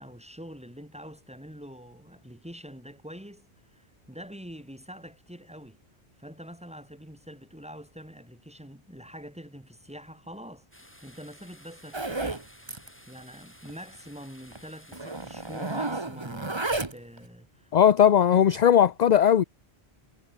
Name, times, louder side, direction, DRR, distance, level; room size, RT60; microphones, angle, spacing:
voice 1, 0.0-5.8 6.2-12.7 13.1-16.6 16.9-17.7, equal, 5° right, 3.8 m, -45 dB
sound 1, 10.7-15.9, equal, 10° left, 5.3 m, -54 dB
Zipper (clothing), 11.9-12.4 12.7-12.9 13.2-13.3 13.7-13.8 14.5-14.6 14.9-17.2, right 2 dB, 25° right, 1.5 m, -32 dB
voice 2, 17.7-19.4, left 9 dB, 50° left, 0.6 m, -18 dB
omnidirectional pair, 1.1 m